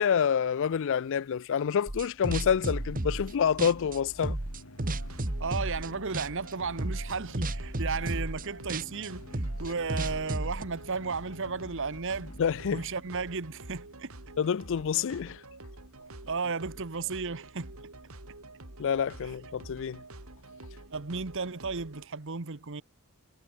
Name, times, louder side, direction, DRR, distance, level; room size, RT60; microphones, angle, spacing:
voice 1, 0.0-4.4 12.4-12.8 14.4-15.4 18.8-20.0, left 7 dB, 60° left, 0.4 m, -27 dB
sound 1, 1.9-13.8, left 1 dB, 85° left, 4.5 m, -50 dB
sound 2, 1.9-3.3 3.6-5.9 6.1-6.5 6.8-10.6, right 1 dB, 40° right, 1.6 m, -33 dB
sound 3, 4.8-22.1, right 2 dB, 75° right, 3.7 m, -48 dB
voice 2, 5.4-12.4 12.7-14.2 16.2-17.7 19.2-19.3 20.9-22.8, right 4 dB, 60° right, 1.2 m, -34 dB
head